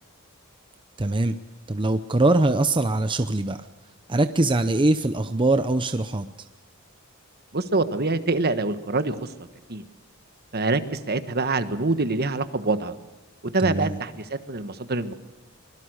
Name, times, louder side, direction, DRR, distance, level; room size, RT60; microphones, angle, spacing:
voice 1, 1.0-1.3 1.7-3.7 4.1-6.3 13.6-14.0, right 2 dB, 25° right, 9 dB, 0.7 m, -22 dB
voice 2, 7.5-9.3 9.7-9.8 10.5-12.9 13.5-15.1, right 3 dB, 50° right, 11 dB, 1.4 m, -25 dB
24.5 x 22.0 x 6.5 m, 1.2 s
head